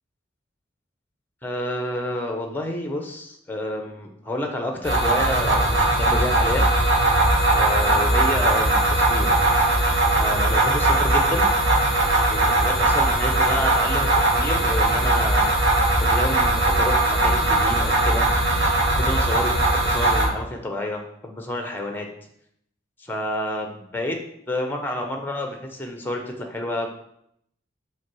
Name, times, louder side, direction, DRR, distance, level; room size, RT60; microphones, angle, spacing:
voice 1, 1.4-6.7 7.5-9.4 10.2-11.5 12.3-15.5 16.0-18.3 18.9-22.1 23.0-24.2 24.5-26.9, left 1 dB, 10° left, 3 dB, 0.9 m, -29 dB
sound 1, 4.8-20.3, right 2 dB, 80° right, 1.8 m, -20 dB
6.0 x 4.1 x 6.2 m, 0.71 s
head